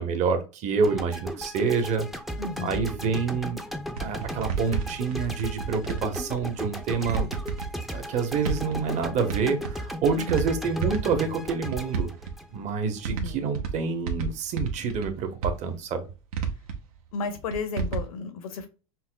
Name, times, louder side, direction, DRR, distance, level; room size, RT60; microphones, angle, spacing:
voice 1, 0.0-2.1 2.6-3.6 4.0-7.3 7.9-12.1 12.5-16.0, right 5 dB, 40° right, 0.9 m, -27 dB
sound 1, 0.8-13.0, equal, ahead, 0.5 m, -36 dB
voice 2, 2.4-2.9 10.1-10.4 13.1-13.5 17.1-18.7, left 4 dB, 85° left, 0.9 m, -33 dB
sound 2, 3.9-6.5 6.8-8.0 8.3-9.4 9.6-10.5 10.7-11.3 11.7-12.6 13.0-13.8 14.1-15.1 15.4-16.8 17.5-18.0, right 6 dB, 80° right, 0.8 m, -30 dB
5.6 x 2.1 x 2.2 m
hypercardioid pair, 110°, 18 cm